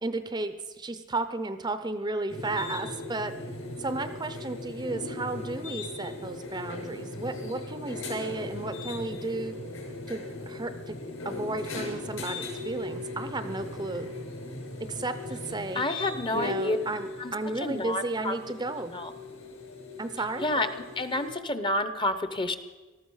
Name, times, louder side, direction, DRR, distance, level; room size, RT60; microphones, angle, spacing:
voice 1, 0.0-3.4 3.8-9.6 10.1-11.0 11.2-14.1 14.8-15.8 16.3-18.9 20.0-20.5, right 2 dB, 20° right, 10 dB, 0.6 m, -33 dB
sound 1, 2.3-21.3, left 2 dB, 65° left, 6.1 m, -38 dB
voice 2, 15.7-16.8 17.2-18.4 18.9-19.1 20.4-20.7 21.0-22.6, left 2 dB, 20° left, 11 dB, 0.7 m, -29 dB
19.0 x 14.0 x 5.5 m, 1.3 s
head